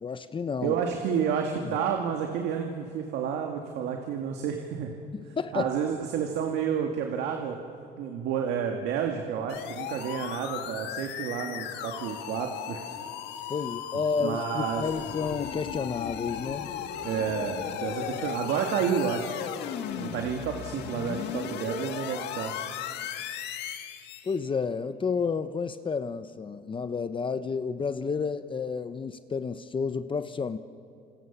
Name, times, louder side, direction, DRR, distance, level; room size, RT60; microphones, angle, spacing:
voice 1, 0.0-0.8 1.6-1.8 5.1-5.7 13.5-16.7 24.2-30.6, left 5 dB, 30° left, 11 dB, 0.9 m, -31 dB
voice 2, 0.6-4.9 5.5-7.6 8.0-12.8 14.2-14.8 17.0-19.3 20.0-22.5, right 7 dB, 85° right, 3 dB, 2.2 m, -30 dB
sound 1, 9.5-24.4, left 9 dB, 90° left, 1.8 m, -36 dB
29.0 x 27.5 x 7.3 m, 2.5 s
cardioid pair, 110°, 17 cm